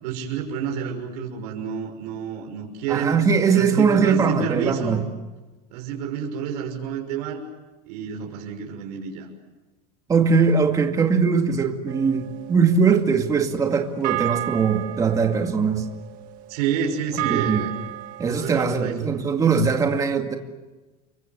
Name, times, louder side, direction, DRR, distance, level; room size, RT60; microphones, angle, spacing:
voice 1, 0.0-3.1 3.5-5.0 5.7-7.4 7.8-9.3 16.5-17.7 18.3-19.1, right 7 dB, 70° right, 1 dB, 6.1 m, -29 dB
voice 2, 2.9-5.1 10.1-15.9 17.3-17.7 18.2-20.4, right 5 dB, 15° right, 4 dB, 2.2 m, -21 dB
sound 1, 11.9-18.5, right 15 dB, 45° right, 1.7 m, -33 dB
30.0 x 24.0 x 8.0 m, 1.2 s
supercardioid pair, 155°, 20 cm